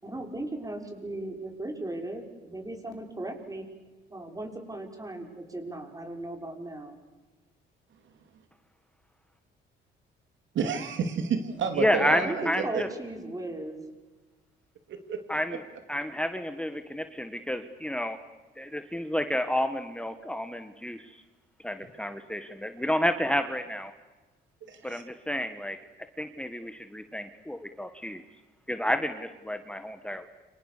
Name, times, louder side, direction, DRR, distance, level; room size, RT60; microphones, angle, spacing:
voice 1, 0.0-3.6 4.1-7.0 12.1-13.9, right 2 dB, 15° right, 4 dB, 5.9 m, -37 dB
voice 2, 10.5-12.8 14.9-15.2 15.5-15.6 24.7-25.0, right 6 dB, 70° right, 7 dB, 3.2 m, -30 dB
voice 3, 11.8-12.9 15.3-15.6 15.9-18.2 18.6-21.0 21.6-23.9 24.8-25.8 26.2-28.2 28.7-30.3, equal, 5° left, 8 dB, 1.6 m, -30 dB
29.5 x 27.0 x 6.8 m, 1.2 s
cardioid pair, 90°, 20 cm